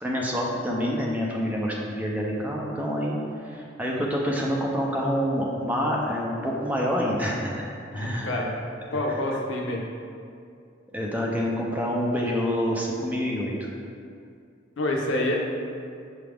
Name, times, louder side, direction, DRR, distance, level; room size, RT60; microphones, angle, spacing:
voice 1, 0.0-8.5 10.9-13.7, equal, 10° right, -3 dB, 0.4 m, -27 dB
voice 2, 7.9-8.5 8.9-9.8 14.8-15.4, left 1 dB, 85° left, 0 dB, 0.6 m, -27 dB
5.9 x 2.4 x 3.3 m, 2.4 s
head